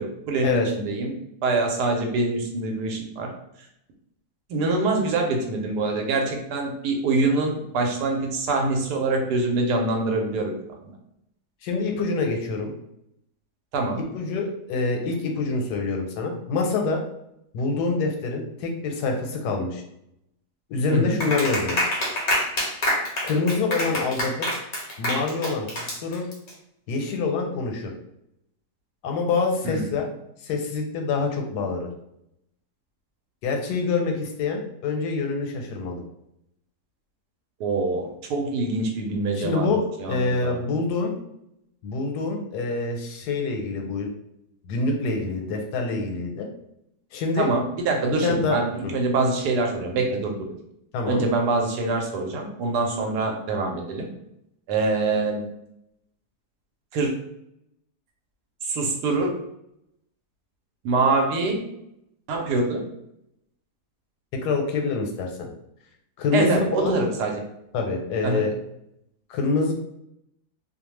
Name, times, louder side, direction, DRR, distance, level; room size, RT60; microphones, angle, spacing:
voice 1, 0.0-3.3 4.5-10.5 13.7-14.0 20.9-21.2 29.6-29.9 37.6-39.7 40.0-40.6 47.4-50.5 51.1-54.1 54.7-55.4 56.9-57.1 58.6-59.3 60.8-61.6 62.3-62.9 66.3-67.4 68.2-68.4, right 3 dB, 85° right, 2 dB, 1.2 m, -25 dB
voice 2, 11.6-12.7 14.1-17.0 17.5-19.8 20.7-21.8 23.2-24.5 25.0-25.7 26.0-26.3 26.9-27.9 29.0-30.0 30.4-31.9 33.4-36.0 39.3-41.1 41.8-44.1 44.6-46.5 47.1-47.5 48.2-48.6 48.8-48.9 50.9-51.2 64.3-65.5 66.2-67.0 67.7-68.5 69.3-69.7, left 3 dB, 85° left, 3 dB, 1.2 m, -26 dB
Clapping, 21.2-26.5, left 1 dB, 65° left, 0.4 m, -26 dB
2.7 x 2.1 x 3.0 m, 0.80 s
omnidirectional pair, 1.7 m